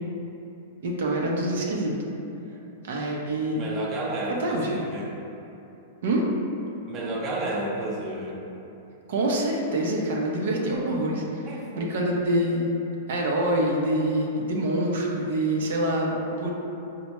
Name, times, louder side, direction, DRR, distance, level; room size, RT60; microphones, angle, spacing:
voice 1, 0.8-1.9 2.9-3.7 4.4-4.7 6.0-6.3 9.1-11.5 11.8-12.7 13.1-16.5, right 1 dB, 75° right, -1 dB, 0.5 m, -25 dB
voice 2, 3.5-5.1 6.9-8.4 11.5-12.1, right 2 dB, 30° right, -3 dB, 0.5 m, -32 dB
4.2 x 2.1 x 2.9 m, 2.9 s
hypercardioid pair, 140°, 0 cm